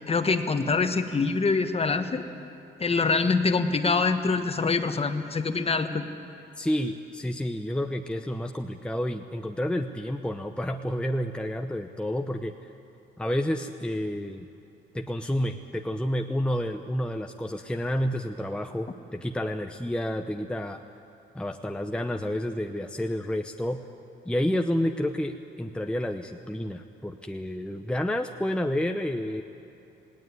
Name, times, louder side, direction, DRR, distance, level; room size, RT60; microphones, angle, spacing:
voice 1, 0.1-2.2 2.8-6.0, left 4 dB, 30° left, 8 dB, 1.4 m, -25 dB
voice 2, 6.6-12.7 13.2-14.5 14.9-20.8 21.3-23.8 24.3-29.4, equal, 5° left, 4 dB, 0.8 m, -30 dB
18.5 x 18.0 x 9.5 m, 2.7 s
cardioid pair, 90°, 20 cm